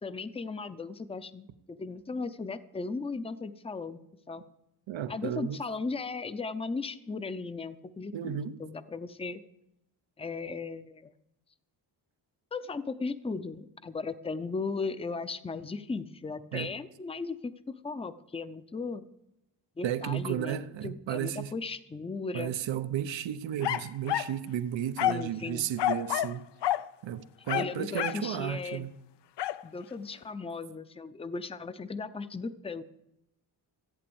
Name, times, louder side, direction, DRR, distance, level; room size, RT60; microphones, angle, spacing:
voice 1, 0.0-4.0 4.3-4.4 5.1-9.4 10.2-11.1 12.5-19.0 19.8-22.5 25.1-25.7 27.5-28.9 29.6-32.8, left 4 dB, 15° left, 0.6 m, -37 dB
voice 2, 4.9-5.6 8.1-8.6 16.5-16.7 19.8-21.5 22.3-26.5 27.0-28.9, right 10 dB, 85° right, 0.9 m, -33 dB
sound 1, 23.6-24.4 25.0-25.3 25.8-26.4 26.6-26.9 27.5-28.3 29.4-29.6, left 13 dB, 70° left, 0.6 m, -29 dB
14.5 x 8.8 x 7.0 m
wide cardioid pair, 125°, 44 cm